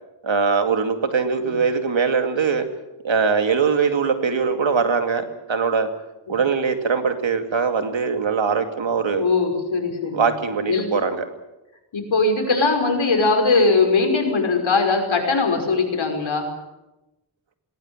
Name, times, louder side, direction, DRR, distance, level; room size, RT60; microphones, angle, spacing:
voice 1, 0.2-2.7 3.0-5.9 6.3-9.3 10.1-11.3, right 5 dB, 70° right, 7 dB, 2.6 m, -21 dB
voice 2, 9.2-10.3 10.7-10.9 11.9-16.5, left 3 dB, 75° left, 3 dB, 5.7 m, -20 dB
19.5 x 19.0 x 9.1 m, 0.99 s
wide cardioid pair, 65°, 47 cm